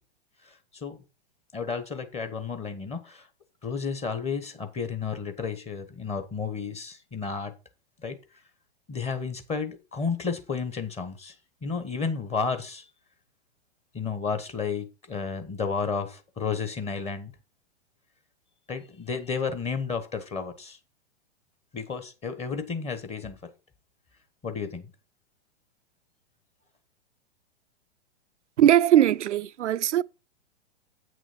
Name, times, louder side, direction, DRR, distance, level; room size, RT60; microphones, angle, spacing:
voice 1, 1.5-3.3 3.6-7.5 8.0-8.2 8.9-11.3 11.6-12.9 13.9-17.3 18.7-20.8 21.7-23.5 24.4-24.8, left 5 dB, 20° left, 1.2 m, -32 dB
voice 2, 28.6-30.0, right 11 dB, 85° right, 0.5 m, -20 dB
8.6 x 6.2 x 4.3 m
hypercardioid pair, 120°, 34 cm